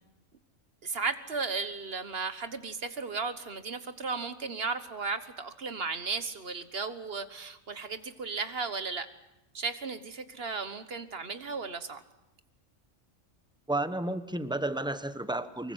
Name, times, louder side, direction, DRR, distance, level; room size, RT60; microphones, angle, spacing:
voice 1, 0.8-9.1 9.5-12.0, right 4 dB, 50° right, 11 dB, 1.5 m, -35 dB
voice 2, 13.7-15.7, right 2 dB, 5° right, 11 dB, 1.0 m, -32 dB
25.0 x 23.0 x 8.0 m, 0.92 s
omnidirectional pair, 1.3 m